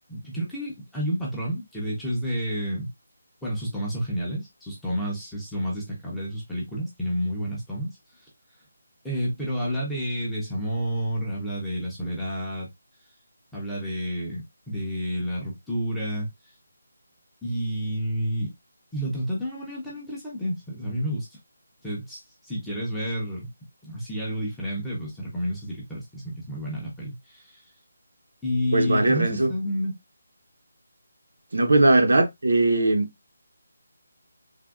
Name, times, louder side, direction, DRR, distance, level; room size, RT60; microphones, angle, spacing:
voice 1, 0.1-2.9 3.4-7.9 9.0-12.7 13.5-16.3 17.4-18.5 18.9-21.3 21.8-23.5 23.8-27.6 28.4-29.9, equal, ahead, 0.5 m, -30 dB
voice 2, 28.7-29.5 31.5-33.1, right 2 dB, 75° right, 0.7 m, -20 dB
3.4 x 2.1 x 2.3 m
hypercardioid pair, 180°, 0 cm